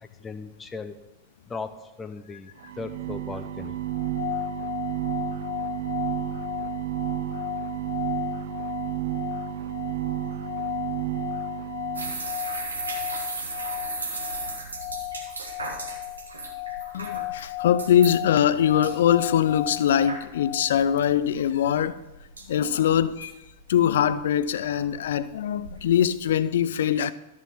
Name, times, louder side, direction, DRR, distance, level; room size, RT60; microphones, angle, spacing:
voice 1, 0.2-1.0 1.5-3.8, left 4 dB, 15° left, 0.7 m, -37 dB
sound 1, 2.6-12.3, right 12 dB, 60° right, 0.6 m, -32 dB
sound 2, 3.9-21.0, left 19 dB, 80° left, 1.5 m, -35 dB
sound 3, 11.9-26.3, right 3 dB, 75° right, 1.5 m, -37 dB
voice 2, 16.9-22.0 22.5-23.3 23.7-27.1, left 9 dB, 60° left, 0.4 m, -22 dB
13.0 x 5.8 x 6.0 m
figure-of-eight pair, 90°, 0 cm